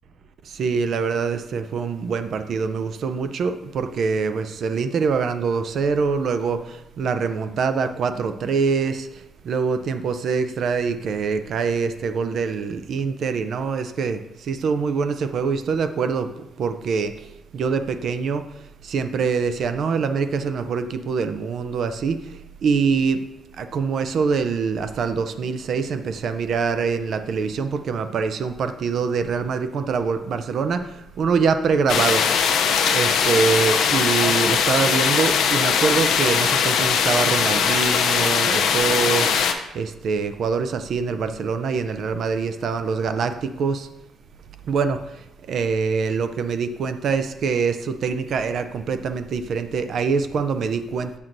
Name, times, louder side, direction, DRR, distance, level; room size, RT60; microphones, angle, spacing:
voice 1, 0.5-9.1 9.4-16.3 16.6-17.3 17.5-18.5 18.8-22.2 22.6-23.2 23.6-32.2 32.9-39.3 39.7-43.9 44.7-51.2, right 5 dB, 50° right, 9 dB, 0.4 m, -24 dB
sound 1, 31.9-39.5, left 7 dB, 70° left, 0.6 m, -20 dB
7.2 x 6.2 x 2.6 m, 0.90 s
cardioid pair, 160°, 0 cm